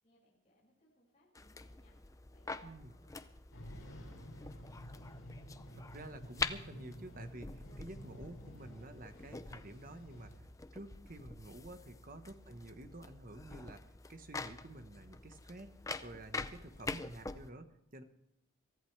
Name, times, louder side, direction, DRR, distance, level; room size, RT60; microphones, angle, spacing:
voice 1, 0.0-3.3 3.6-4.7 12.0-12.2, left 1 dB, 30° left, -5 dB, 6.0 m, -70 dB
sound 1, 1.4-17.5, left 3 dB, 15° left, 0.5 m, -46 dB
sound 2, 3.5-10.4, equal, 85° left, 5.9 m, -52 dB
voice 2, 5.7-10.5 10.7-15.7 16.0-18.0, right 1 dB, 40° right, 8 dB, 1.2 m, -50 dB
sound 3, 8.8-12.0, right 1 dB, 60° left, 5.1 m, -66 dB
23.0 x 14.0 x 3.4 m, 0.87 s
head